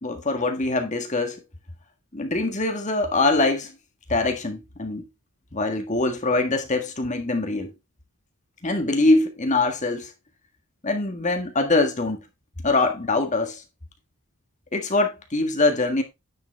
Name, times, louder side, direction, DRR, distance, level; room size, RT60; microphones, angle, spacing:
voice 1, 0.0-1.4 2.1-3.7 4.1-5.1 5.5-7.7 8.6-10.1 10.8-12.3 12.6-13.6 14.7-16.0, left 2 dB, 35° left, 1.6 m, -23 dB
9.8 x 6.8 x 3.4 m
head